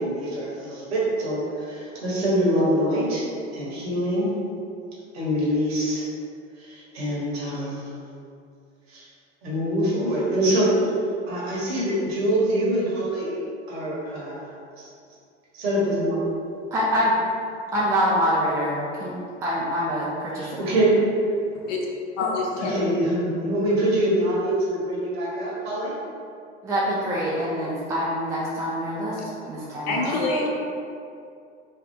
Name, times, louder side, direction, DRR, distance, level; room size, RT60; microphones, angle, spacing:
voice 1, 0.0-1.4 1.7-3.2 3.5-4.3 5.1-6.0 6.6-7.8 8.9-9.1 9.4-10.7 11.3-13.4 13.7-14.5 14.8-14.9 15.5-16.2 20.4-21.1 22.6-25.9 29.9-30.5, right 1 dB, 60° right, -6 dB, 1.1 m, -24 dB
voice 2, 16.7-17.2 17.7-19.1 19.4-20.7 26.6-29.2 29.5-30.1, equal, 10° right, -6 dB, 0.3 m, -25 dB
voice 3, 22.2-22.8 29.9-30.5, left 4 dB, 45° left, 0 dB, 0.5 m, -27 dB
3.3 x 2.3 x 3.0 m, 2.4 s
figure-of-eight pair, 75°, 35 cm